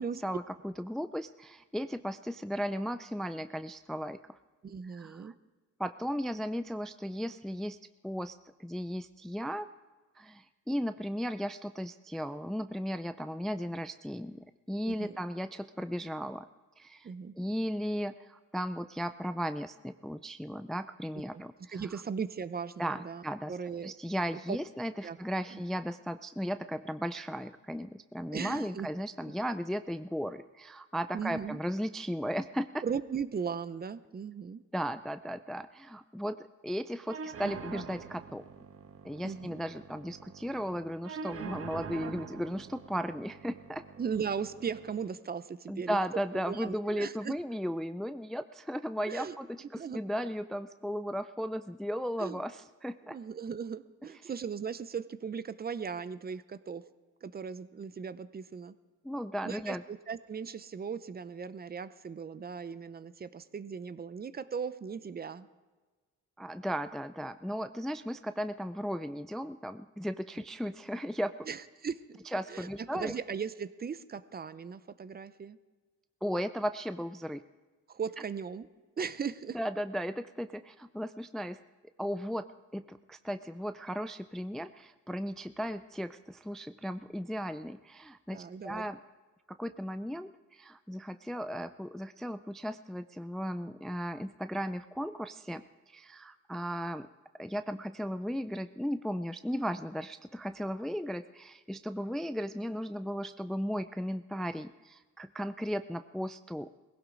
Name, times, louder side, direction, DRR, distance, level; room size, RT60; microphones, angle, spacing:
voice 1, 0.0-4.4 4.9-5.3 5.8-7.8 8.0-9.7 10.2-16.5 16.8-22.0 22.8-23.6 23.8-32.8 34.7-38.5 39.0-43.8 45.7-53.2 59.0-59.8 66.4-71.3 72.3-73.1 76.2-77.4 79.5-81.6 82.0-82.5 82.7-89.0 89.5-97.1 97.4-106.7, equal, ahead, 11 dB, 0.4 m, -36 dB
voice 2, 4.6-5.3 14.9-15.2 17.0-17.3 21.3-21.4 21.7-23.2 23.5-23.9 24.5-24.6 25.0-25.2 25.5-25.6 28.3-28.9 31.1-31.6 32.8-34.6 39.2-39.6 44.0-46.0 46.5-47.3 49.1-49.4 49.7-50.0 52.2-52.4 53.1-56.8 57.2-58.8 59.4-65.5 71.5-72.2 72.5-75.6 77.9-78.7 79.0-79.6 88.3-88.9, right 6 dB, 30° right, 15 dB, 0.7 m, -38 dB
sound 1, 37.1-45.1, right 6 dB, 50° right, 1.2 m, -45 dB
19.0 x 16.5 x 3.9 m, 1.3 s
cardioid pair, 90°, 30 cm